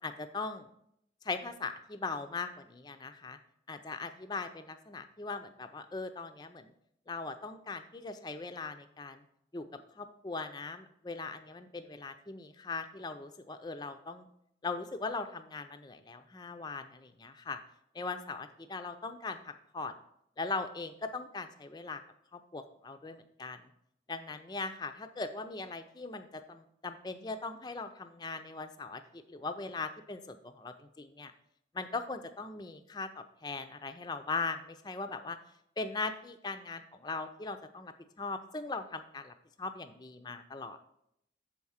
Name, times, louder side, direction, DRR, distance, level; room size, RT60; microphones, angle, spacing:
voice 1, 0.0-0.7 1.2-3.4 3.7-6.7 7.1-9.2 9.5-9.6 10.0-14.3 14.6-17.6 17.9-20.0 20.4-22.0 22.3-23.7 24.1-31.3 31.7-35.4 35.8-40.8, left 3 dB, 25° left, 8 dB, 0.4 m, -40 dB
7.0 x 4.7 x 5.6 m, 0.74 s
head